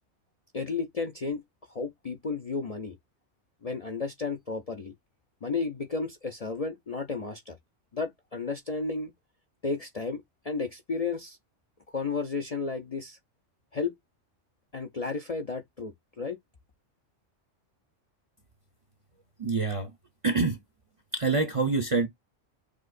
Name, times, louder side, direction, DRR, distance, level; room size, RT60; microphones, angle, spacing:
voice 1, 0.5-1.4 1.7-3.0 3.6-4.9 5.4-7.6 7.9-9.1 9.6-11.4 11.9-13.2 13.7-13.9 14.7-16.4, left 4 dB, 45° left, 0.5 m, -33 dB
voice 2, 19.4-19.9 20.2-20.6 21.1-22.1, right 4 dB, 35° right, 0.6 m, -26 dB
6.2 x 2.8 x 2.5 m
omnidirectional pair, 1.3 m